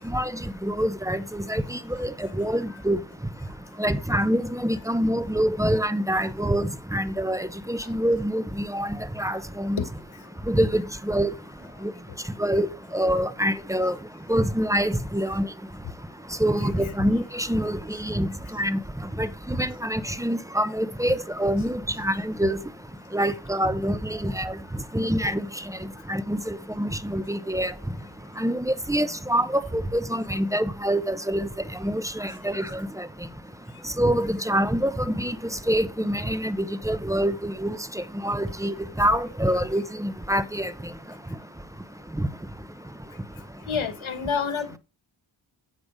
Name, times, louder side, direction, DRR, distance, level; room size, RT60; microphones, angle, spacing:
voice 1, 0.0-3.0 3.8-9.8 10.5-11.3 11.8-11.9 12.4-12.7 12.9-13.9 14.3-15.5 16.4-18.8 19.2-22.6 23.1-24.6 24.9-25.5 26.1-27.7 28.4-31.5 31.8-33.1 34.0-35.4 35.7-36.6 36.8-40.7 42.2-42.3, equal, 5° right, 0.8 m, -25 dB
voice 2, 43.7-44.8, left 6 dB, 80° left, 1.5 m, -28 dB
7.9 x 7.1 x 4.9 m
wide cardioid pair, 65°, 47 cm